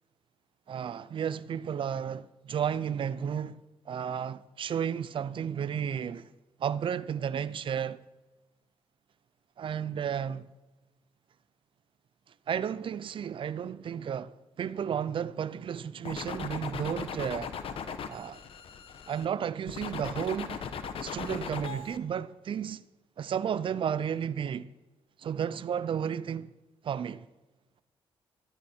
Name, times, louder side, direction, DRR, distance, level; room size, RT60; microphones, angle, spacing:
voice 1, 0.7-3.6 3.9-6.3 6.6-8.0 9.6-10.5 12.5-17.5 18.1-18.4 19.1-20.6 21.0-22.8 23.2-24.7 25.2-26.5 26.8-27.3, right 8 dB, 60° right, 0.7 m, -33 dB
sound 1, 16.0-19.3 19.7-22.0, left 6 dB, 65° left, 1.2 m, -38 dB
14.5 x 12.5 x 4.5 m
cardioid pair, 70°, 10 cm